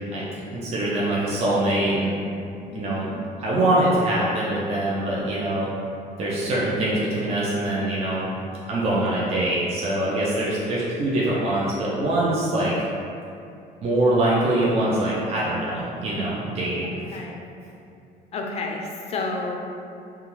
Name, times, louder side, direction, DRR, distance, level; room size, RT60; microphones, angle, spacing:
voice 1, 0.1-2.1 2.7-3.1 3.4-5.7 6.2-8.3 8.7-12.7 13.8-16.9, right 1 dB, 40° right, -6 dB, 0.5 m, -23 dB
voice 2, 2.7-3.2 16.8-17.4 18.3-19.6, left 2 dB, 40° left, 1 dB, 0.4 m, -31 dB
2.3 x 2.2 x 3.0 m, 2.6 s
cardioid pair, 110°, 17 cm